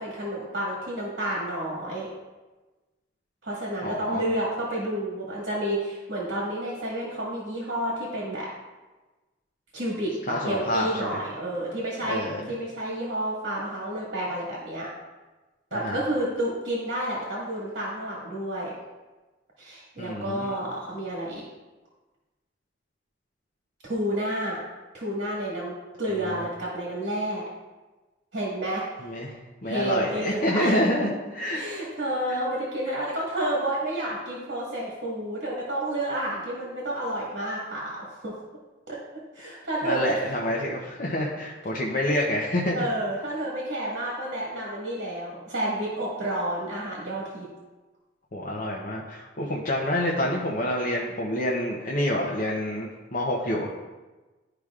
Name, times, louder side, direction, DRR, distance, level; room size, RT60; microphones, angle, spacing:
voice 1, 0.0-2.1 3.4-8.5 9.7-12.2 12.5-14.9 15.7-18.7 19.6-21.4 23.8-24.6 24.9-27.4 28.3-28.9 29.6-30.9 31.5-38.3 38.9-39.0 39.3-40.2 42.7-47.5, right 1 dB, 60° right, -5 dB, 1.8 m, -30 dB
voice 2, 3.8-4.2 10.3-11.2 12.0-12.5 15.7-16.0 20.0-20.6 26.2-26.5 29.0-31.7 32.3-32.4 39.8-42.8 48.3-53.7, left 1 dB, 45° left, -3 dB, 0.7 m, -28 dB
12.0 x 4.9 x 2.4 m, 1.2 s
head